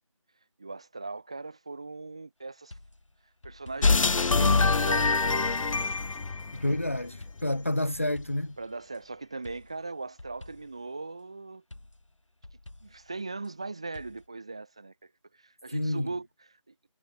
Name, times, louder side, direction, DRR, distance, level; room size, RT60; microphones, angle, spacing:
voice 1, 0.6-2.8 3.4-5.6 6.8-7.0 8.6-11.6 12.8-16.3 16.7-16.8, right 3 dB, 10° right, 1.2 m, -40 dB
sound 1, 2.7-4.5 4.9-6.4 7.2-9.0 9.4-10.9 11.7-13.5 13.9-14.3, left 2 dB, 70° left, 2.6 m, -50 dB
sound 2, 3.8-7.2, left 4 dB, 90° left, 0.5 m, -24 dB
voice 2, 6.5-8.6 15.7-16.1, left 1 dB, 25° left, 0.8 m, -29 dB
figure-of-eight pair, 175°, 16 cm